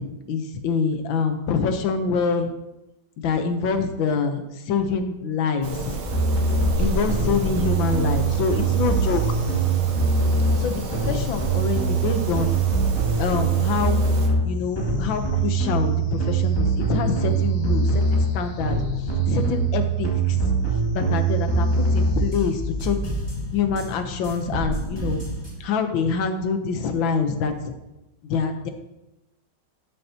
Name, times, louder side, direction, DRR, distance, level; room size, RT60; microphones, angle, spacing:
voice 1, 0.0-2.5 3.2-6.0 6.8-9.2 10.6-12.5 13.2-14.1 14.4-18.8 19.3-20.5 20.9-23.0 23.5-25.2 25.6-27.7 28.3-28.7, left 5 dB, 75° left, 7 dB, 1.6 m, -25 dB
sound 1, 5.6-14.3, right 3 dB, 85° right, 1.7 m, -31 dB
sound 2, 6.1-6.7 7.1-10.6 10.9-14.4 14.8-18.2 18.6-23.9 24.2-25.6, right 4 dB, 15° left, 1.9 m, -23 dB
sound 3, 6.7-25.3, left 5 dB, 55° left, 0.9 m, -38 dB
12.5 x 7.1 x 2.8 m, 0.95 s
omnidirectional pair, 2.2 m